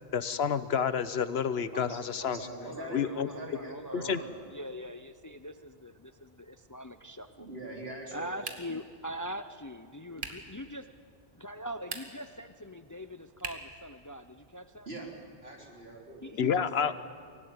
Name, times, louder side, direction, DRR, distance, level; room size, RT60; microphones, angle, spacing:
voice 1, 0.1-2.5 2.9-3.3 3.9-4.2 16.4-16.9, left 7 dB, 80° left, 14 dB, 1.1 m, -29 dB
voice 2, 1.6-4.3 7.4-8.3 14.9-15.1 15.4-16.3, right 2 dB, 75° right, 0 dB, 3.9 m, -43 dB
voice 3, 2.6-7.5 8.1-10.9 11.3-14.9 16.2-16.9, equal, 20° left, 10 dB, 0.5 m, -42 dB
sound 1, 8.4-8.9 10.2-10.5 11.7-12.3 13.4-13.8, right 3 dB, 55° right, 1.8 m, -40 dB
24.5 x 17.0 x 9.5 m, 2.1 s
omnidirectional pair, 1.0 m